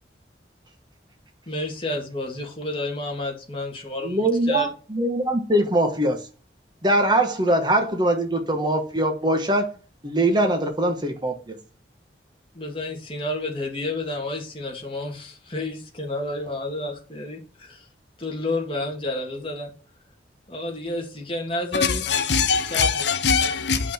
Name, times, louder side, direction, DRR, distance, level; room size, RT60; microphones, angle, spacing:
voice 1, 1.5-4.7 12.5-17.9 18.2-19.7 20.5-22.0 22.6-23.0, left 1 dB, 30° left, 2.2 m, -30 dB
voice 2, 4.0-6.3 6.8-9.7 10.0-11.6, right 1 dB, 25° right, 1.3 m, -22 dB
voice 3, 21.8-23.9, left 6 dB, 75° left, 0.8 m, -22 dB
8.5 x 5.8 x 4.3 m
head